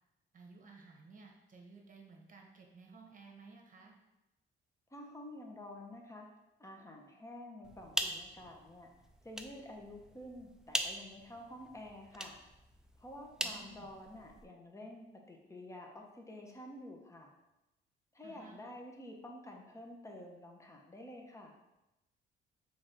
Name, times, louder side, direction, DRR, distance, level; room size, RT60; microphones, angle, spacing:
voice 1, 0.3-4.0 13.4-13.9 18.2-18.6, right 4 dB, 40° right, 1 dB, 1.0 m, -56 dB
voice 2, 4.9-6.3 6.6-8.9 9.2-12.4 13.0-17.3 18.1-21.5, left 1 dB, 15° left, 1 dB, 0.8 m, -50 dB
sound 1, 7.6-14.5, right 1 dB, 5° right, 0.4 m, -42 dB
3.9 x 3.3 x 3.8 m, 0.96 s
cardioid pair, 90°, 20 cm